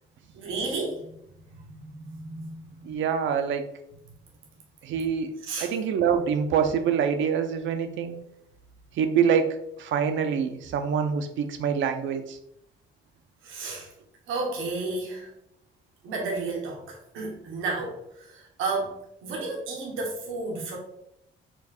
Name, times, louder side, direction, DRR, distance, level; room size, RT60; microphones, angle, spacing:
voice 1, 0.3-1.1 1.5-2.9 5.4-5.7 13.4-13.9 14.3-15.3 16.0-20.8, right 3 dB, 90° right, -1 dB, 1.1 m, -33 dB
voice 2, 2.8-3.7 4.8-8.2 8.9-12.4, right 7 dB, 75° right, 7 dB, 0.6 m, -25 dB
4.5 x 2.3 x 4.2 m, 0.77 s
cardioid pair, 90°, 20 cm